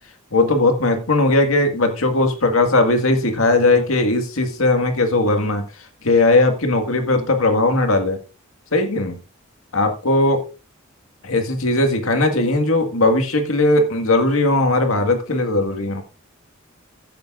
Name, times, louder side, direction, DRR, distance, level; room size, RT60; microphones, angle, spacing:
voice 1, 0.3-5.6 6.0-8.2 8.7-9.2 9.7-10.4 11.3-16.0, left 2 dB, 85° left, 5 dB, 1.9 m, -18 dB
13.5 x 10.5 x 2.5 m, 0.34 s
head